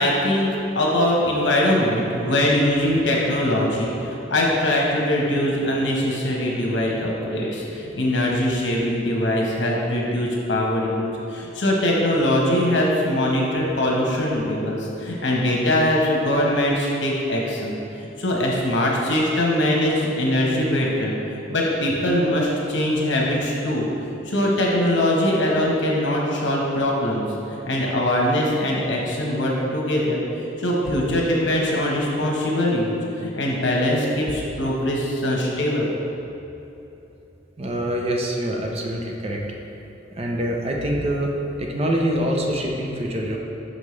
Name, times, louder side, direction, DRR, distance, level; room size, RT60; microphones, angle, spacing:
voice 1, 0.0-17.8 18.0-23.9 24.2-35.9, left 1 dB, 85° left, -2 dB, 1.1 m, -22 dB
voice 2, 37.6-39.4 40.2-43.4, equal, 35° right, 0 dB, 0.6 m, -25 dB
6.2 x 5.4 x 3.2 m, 3.0 s
head